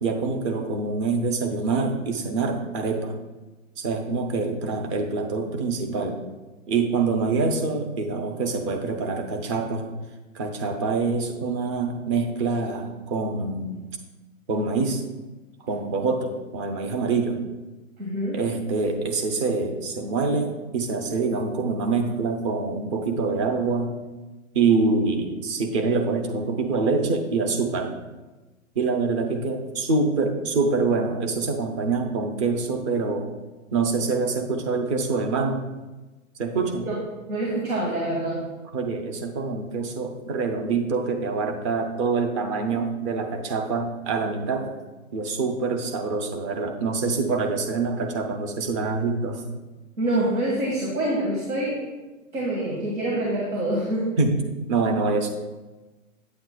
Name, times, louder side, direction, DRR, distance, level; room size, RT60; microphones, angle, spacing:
voice 1, 0.0-3.1 3.8-6.2 6.7-9.9 10.3-13.8 14.5-15.0 15.6-17.4 18.3-24.0 24.5-28.0 28.8-33.3 33.7-35.6 36.4-36.9 38.7-44.7 45.1-49.4 54.2-54.4 54.7-55.3, right 4 dB, 25° right, 4 dB, 0.5 m, -25 dB
voice 2, 18.0-18.4 36.8-36.9 37.3-38.5 50.0-51.8 52.3-54.2, right 1 dB, 85° right, -3 dB, 1.9 m, -26 dB
8.8 x 7.9 x 2.3 m, 1.2 s
hypercardioid pair, 135°, 42 cm